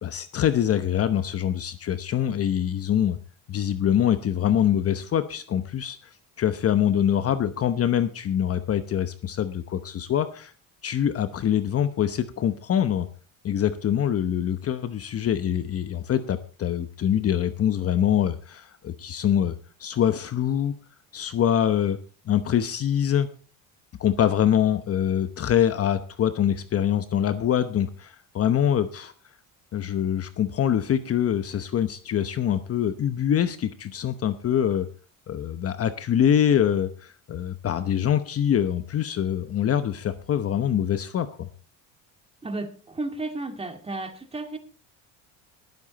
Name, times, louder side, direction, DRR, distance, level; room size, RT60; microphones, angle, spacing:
voice 1, 0.0-3.2 3.5-6.0 6.4-10.5 10.8-13.1 13.4-19.5 19.8-20.7 21.1-22.0 22.3-23.3 24.0-29.1 29.7-34.9 35.3-41.5, left 9 dB, 40° left, 11 dB, 0.9 m, -24 dB
voice 2, 42.4-44.6, right 2 dB, 15° right, 6 dB, 2.0 m, -33 dB
20.0 x 7.6 x 4.1 m, 0.38 s
cardioid pair, 120°, 38 cm